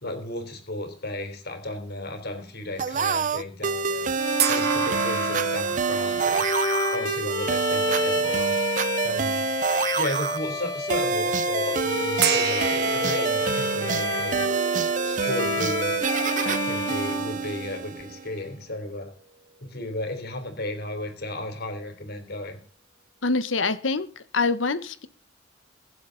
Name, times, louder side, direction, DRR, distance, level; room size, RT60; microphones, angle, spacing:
voice 1, 0.0-4.1 4.5-6.5 6.9-8.6 9.0-9.5 10.0-14.5 15.0-16.0 16.4-19.1 19.6-22.6, left 1 dB, 55° left, 3.7 m, -34 dB
sound 1, 2.8-18.3, right 5 dB, 40° right, 0.6 m, -27 dB
Bowed string instrument, 4.2-18.1, left 3 dB, 25° left, 2.2 m, -30 dB
sound 2, 4.4-7.9 8.5-8.6 12.2-18.6, right 7 dB, 60° right, 1.8 m, -32 dB
voice 2, 23.2-25.1, left 3 dB, 85° left, 1.2 m, -25 dB
23.0 x 7.7 x 4.0 m
head